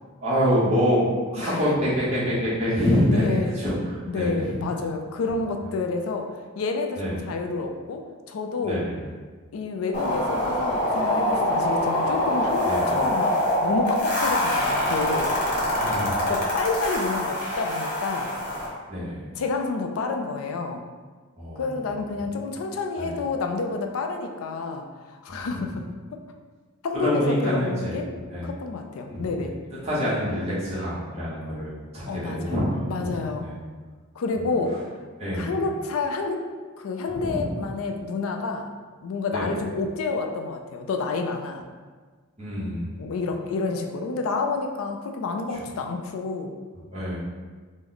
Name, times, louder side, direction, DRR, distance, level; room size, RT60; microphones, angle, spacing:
voice 1, 0.2-1.0 1.3-4.6 6.9-7.3 8.6-9.0 12.6-13.0 15.8-16.1 18.9-19.3 21.4-21.7 22.2-22.3 23.0-23.2 25.4-25.5 26.9-28.0 28.3-28.5 29.1-29.5 29.8-32.8 33.4-33.6 34.3-34.5 35.2-35.6 37.1-37.5 39.3-39.5 42.4-43.1 45.5-45.6 46.9-47.2, equal, 30° right, -10 dB, 0.9 m, -26 dB
voice 2, 3.1-3.5 4.1-6.3 6.6-8.0 8.3-8.8 9.5-13.3 13.6-15.3 16.2-18.3 19.4-20.8 21.6-24.8 25.1-25.9 26.8-28.1 28.4-29.6 32.1-32.5 32.8-33.5 34.2-34.9 35.3-36.5 36.8-38.7 39.0-41.6 43.0-46.5, left 4 dB, 75° left, 4 dB, 0.4 m, -29 dB
sound 1, 9.9-18.7, left 1 dB, 40° left, 0.9 m, -24 dB
3.1 x 2.0 x 3.8 m, 1.5 s
head